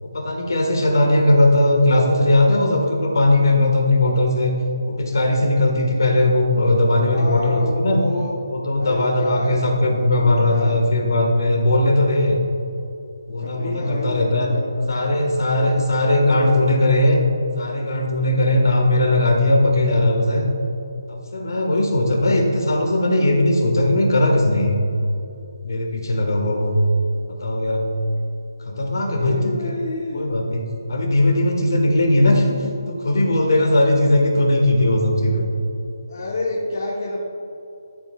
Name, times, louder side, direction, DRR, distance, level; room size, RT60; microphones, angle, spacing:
voice 1, 0.0-4.5 4.9-8.0 8.5-12.4 13.3-14.5 14.9-17.2 17.6-20.5 21.1-24.8 25.6-26.8 27.3-27.9 28.6-29.7 30.1-30.6 30.9-32.6 32.9-35.5, left 1 dB, 70° left, 2 dB, 1.7 m, -18 dB
voice 2, 1.0-1.3 7.0-8.3 8.8-9.6 10.1-10.8 13.4-14.9 15.8-15.9 16.2-16.8 29.0-30.3 36.1-37.2, left 2 dB, 50° left, -4 dB, 1.2 m, -29 dB
12.5 x 7.7 x 2.4 m, 2.9 s
hypercardioid pair, 165°, 2 cm